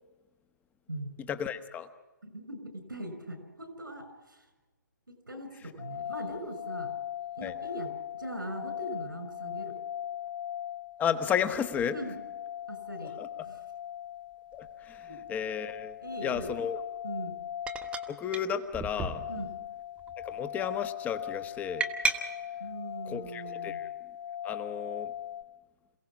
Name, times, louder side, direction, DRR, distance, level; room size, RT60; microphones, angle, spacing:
voice 1, 1.3-1.9 7.4-7.5 11.0-11.9 13.0-13.3 14.5-16.0 16.2-16.8 18.1-19.2 20.2-21.9 23.1-23.9 24.4-25.1, left 8 dB, 15° left, 10 dB, 1.2 m, -33 dB
voice 2, 2.2-4.5 5.3-6.9 7.3-7.9 8.2-9.7 11.9-12.1 12.7-13.1 13.4-13.6 15.1-15.2 16.0-16.5 17.0-17.3 19.3-19.5 22.6-23.8, right 1 dB, 90° right, 8 dB, 6.0 m, -40 dB
sound 1, 5.8-25.4, left 10 dB, 35° left, 1.3 m, -40 dB
sound 2, 14.6-14.7 16.3-16.6 17.7-18.1 18.3-18.4 18.7-19.6 20.0-20.4 21.8-22.2, right 4 dB, 10° right, 1.4 m, -33 dB
27.5 x 17.0 x 6.2 m, 1.2 s
figure-of-eight pair, 130°, 11 cm